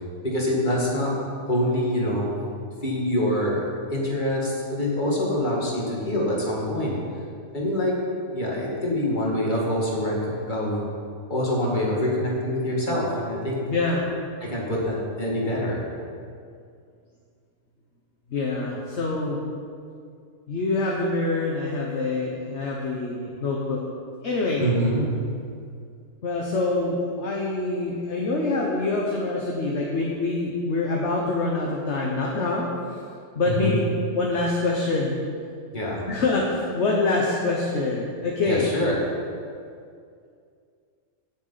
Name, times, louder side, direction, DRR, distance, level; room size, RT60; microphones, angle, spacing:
voice 1, 0.2-1.1 1.5-2.3 2.8-3.6 3.9-7.0 7.5-7.9 8.3-10.9 11.3-13.6 14.4-15.8 24.6-25.1 33.5-33.8 35.7-36.1 38.4-39.0, left 1 dB, 30° left, -4 dB, 2.4 m, -25 dB
voice 2, 13.7-14.0 18.3-19.4 20.5-23.8 24.2-24.6 26.2-32.7 33.3-33.8 34.1-35.1 36.1-38.7, left 3 dB, 50° left, -2 dB, 1.4 m, -25 dB
17.0 x 7.0 x 4.1 m, 2.3 s
omnidirectional pair, 1.5 m